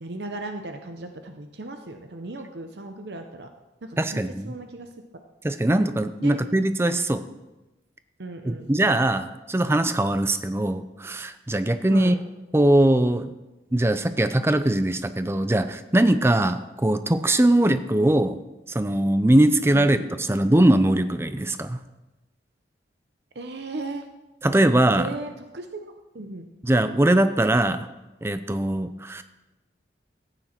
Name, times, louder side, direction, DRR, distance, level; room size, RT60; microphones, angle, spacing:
voice 1, 0.0-3.5 3.8-4.9 6.2-6.4 8.2-8.9 11.9-12.2 19.7-20.1 23.3-24.1 25.0-25.7 26.1-26.5, right 2 dB, 70° right, 6 dB, 0.8 m, -36 dB
voice 2, 4.0-4.5 5.4-7.2 8.5-12.2 12.5-13.3 13.7-18.4 18.7-21.8 24.4-25.1 26.6-27.9 28.2-29.2, right 1 dB, 15° right, 10 dB, 0.5 m, -21 dB
14.0 x 9.1 x 4.4 m, 1.1 s
head